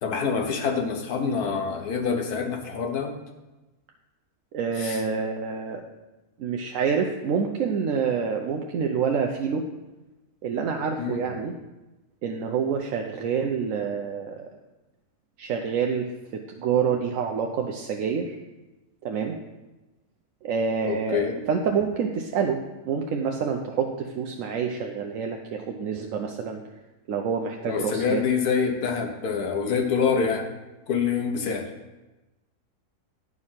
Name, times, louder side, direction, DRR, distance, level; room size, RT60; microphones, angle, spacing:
voice 1, 0.0-3.2 4.8-5.0 11.0-11.2 20.9-21.3 27.6-30.5 30.9-31.7, left 6 dB, 80° left, 4 dB, 1.5 m, -26 dB
voice 2, 4.5-5.8 6.4-9.6 10.4-11.5 12.2-14.5 15.4-18.4 19.0-19.3 20.4-22.6 22.9-26.6 27.1-28.2, right 6 dB, 65° right, 2 dB, 0.9 m, -27 dB
9.6 x 4.9 x 5.6 m, 1.1 s
omnidirectional pair, 1.6 m